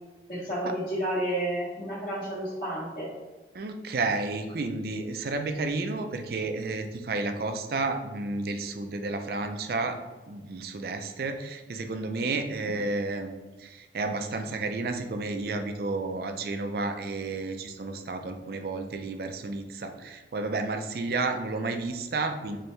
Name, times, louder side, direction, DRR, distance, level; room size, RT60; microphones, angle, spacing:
voice 1, 0.3-3.1, right 1 dB, 45° left, -11 dB, 1.2 m, -31 dB
voice 2, 3.5-10.0 10.3-22.6, right 3 dB, 55° right, 6 dB, 0.4 m, -31 dB
4.4 x 3.3 x 3.2 m, 1.2 s
head